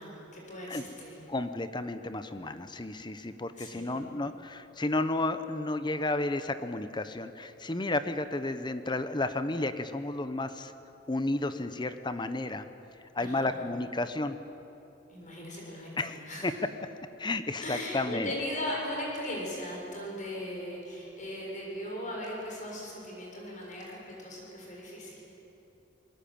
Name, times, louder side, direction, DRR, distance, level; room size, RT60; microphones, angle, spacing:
voice 1, 0.0-1.2 3.1-3.2 3.5-4.1 13.2-13.7 15.1-16.5 17.6-25.2, left 1 dB, 40° left, -2 dB, 7.2 m, -38 dB
voice 2, 1.3-10.7 11.1-12.6 13.1-14.4 16.0-16.5 17.2-18.3, left 2 dB, 25° left, 10 dB, 0.9 m, -32 dB
27.5 x 21.5 x 8.7 m, 2.9 s
head